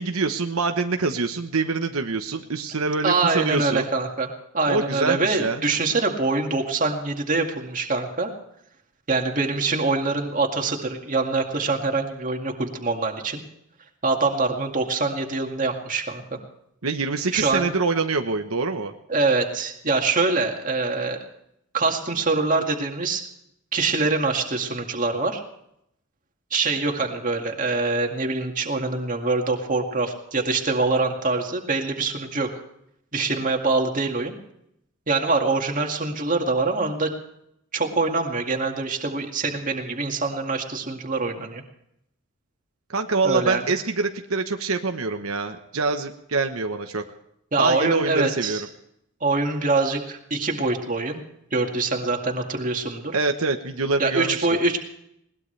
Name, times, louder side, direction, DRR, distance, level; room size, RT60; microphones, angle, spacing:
voice 1, 0.0-3.9 4.7-5.6 16.8-18.9 42.9-47.0 47.6-48.7 53.1-54.5, right 3 dB, 80° right, 5 dB, 1.1 m, -25 dB
voice 2, 3.0-4.3 4.5-8.3 9.1-13.4 14.0-16.4 17.3-17.7 19.1-21.2 21.7-23.2 23.7-25.4 26.5-32.5 33.1-34.3 35.1-37.1 37.7-41.6 43.2-43.6 47.5-48.6 49.2-51.2 51.5-53.2 54.0-54.8, right 3 dB, 35° right, 3 dB, 2.2 m, -24 dB
21.0 x 19.0 x 3.3 m, 0.77 s
head